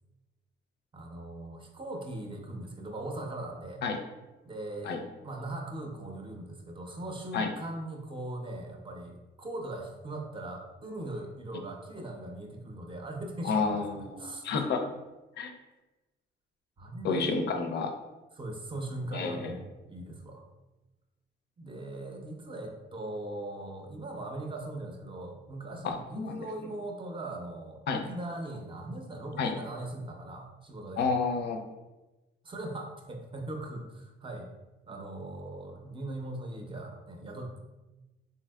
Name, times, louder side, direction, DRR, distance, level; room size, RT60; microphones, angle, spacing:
voice 1, 0.9-3.8 4.4-14.4 16.8-17.4 18.4-20.4 21.6-31.1 32.4-34.5 34.9-37.6, right 1 dB, 25° right, 1 dB, 0.6 m, -40 dB
voice 2, 13.4-14.9 15.4-15.5 17.0-17.9 19.1-19.5 25.8-26.5 27.9-28.0 29.4-29.5 31.0-31.6, left 4 dB, 60° left, 5 dB, 0.5 m, -30 dB
3.5 x 2.7 x 2.3 m, 1.1 s
cardioid pair, 90°, 20 cm